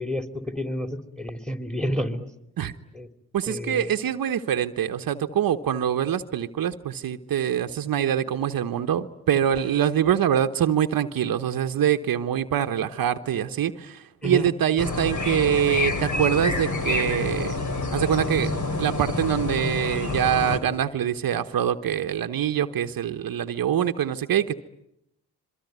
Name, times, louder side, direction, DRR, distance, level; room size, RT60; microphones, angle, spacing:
voice 1, 0.0-2.3 2.9-3.1 3.5-4.0 14.2-14.5, equal, ahead, 7 dB, 3.1 m, -30 dB
voice 2, 3.3-17.5 17.9-18.5 18.8-24.5, right 9 dB, 65° right, 7 dB, 1.1 m, -24 dB
sound 1, 14.8-20.6, left 2 dB, 50° left, 4.0 m, -27 dB
25.5 x 23.0 x 9.4 m, 0.82 s
supercardioid pair, 50°, 37 cm